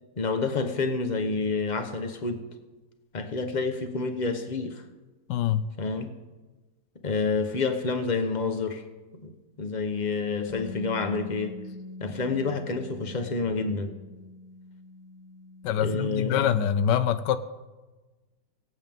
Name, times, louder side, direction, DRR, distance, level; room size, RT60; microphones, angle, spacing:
voice 1, 0.2-2.4 3.1-4.8 5.8-6.1 7.0-8.8 9.2-9.3 9.6-11.6 12.0-13.9 15.8-16.5, left 4 dB, 30° left, 6 dB, 1.0 m, -28 dB
voice 2, 5.3-5.7 15.6-17.4, left 9 dB, 85° left, 13 dB, 1.3 m, -24 dB
Bass guitar, 10.5-16.7, left 2 dB, 70° left, 3.5 m, -43 dB
23.0 x 8.3 x 3.6 m, 1.2 s
omnidirectional pair, 1.9 m